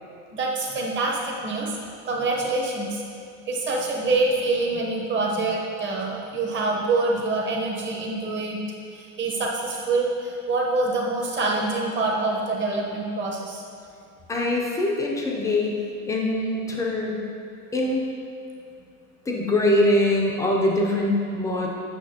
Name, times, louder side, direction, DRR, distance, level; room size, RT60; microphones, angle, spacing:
voice 1, 0.3-1.8 2.1-3.0 3.5-8.6 8.9-13.6, right 3 dB, 25° right, -2 dB, 0.9 m, -25 dB
voice 2, 14.3-15.8 16.1-17.2 17.7-18.0 19.3-21.7, left 1 dB, 10° left, -2 dB, 0.4 m, -23 dB
8.6 x 5.7 x 2.8 m, 2.5 s
supercardioid pair, 140°, 44 cm